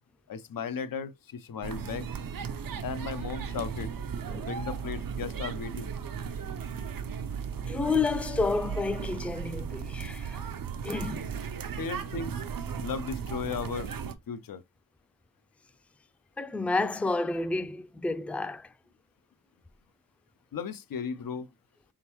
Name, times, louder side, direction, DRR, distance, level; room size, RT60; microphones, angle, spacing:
voice 1, 0.3-2.1 2.8-3.9 4.4-5.9 11.8-12.4 12.8-13.9 14.3-14.6 20.5-21.5, left 6 dB, 85° left, 0.6 m, -36 dB
sound 1, 1.6-14.1, right 7 dB, 85° right, 0.7 m, -36 dB
voice 2, 7.7-10.4 10.8-11.3 16.4-18.7, left 3 dB, 5° left, 0.3 m, -30 dB
4.3 x 3.6 x 3.0 m
wide cardioid pair, 105°, 33 cm